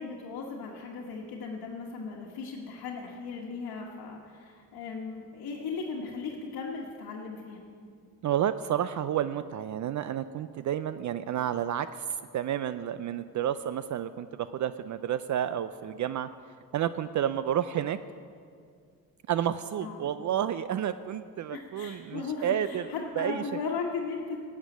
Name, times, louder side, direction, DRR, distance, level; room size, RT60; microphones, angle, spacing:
voice 1, 0.0-7.6 19.8-20.1 21.5-24.4, left 4 dB, 70° left, -3 dB, 1.4 m, -37 dB
voice 2, 8.2-12.1 12.3-16.3 16.7-18.0 19.3-22.9 23.2-23.4, right 10 dB, 50° right, 13 dB, 0.4 m, -30 dB
11.0 x 7.4 x 9.1 m, 2.3 s
cardioid pair, 85°, 38 cm